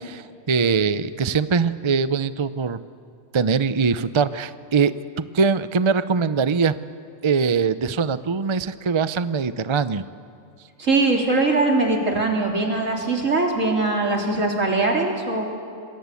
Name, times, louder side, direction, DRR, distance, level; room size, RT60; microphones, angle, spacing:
voice 1, 0.1-2.8 3.3-4.9 5.2-6.8 7.2-10.0, right 5 dB, 35° right, 13 dB, 0.5 m, -22 dB
voice 2, 10.8-15.4, right 3 dB, 70° right, 1 dB, 3.9 m, -21 dB
27.5 x 21.5 x 8.4 m, 2.5 s
omnidirectional pair, 1.4 m